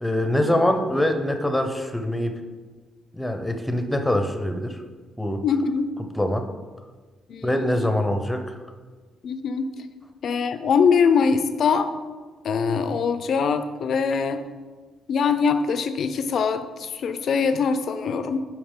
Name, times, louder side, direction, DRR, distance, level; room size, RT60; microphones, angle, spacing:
voice 1, 0.0-2.4 3.1-4.8 5.2-5.4 6.1-6.5 7.4-8.4, left 1 dB, 5° left, 6 dB, 0.7 m, -24 dB
voice 2, 5.4-5.9 7.3-7.9 9.2-9.7 10.2-11.9 12.4-14.4 15.1-18.5, left 5 dB, 60° left, 9 dB, 0.6 m, -23 dB
8.7 x 4.7 x 3.7 m, 1.4 s
cardioid pair, 90°, 0 cm